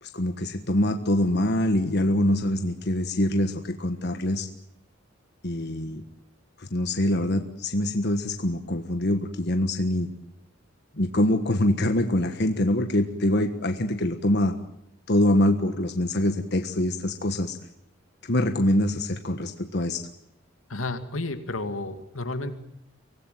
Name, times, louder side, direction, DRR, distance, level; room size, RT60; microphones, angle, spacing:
voice 1, 0.0-4.5 5.4-6.0 6.6-10.1 11.0-14.5 15.1-17.6 18.3-20.0, left 1 dB, 55° left, 6 dB, 1.5 m, -24 dB
voice 2, 20.7-22.6, left 2 dB, 85° left, 8 dB, 2.4 m, -31 dB
24.5 x 18.5 x 9.3 m, 0.83 s
head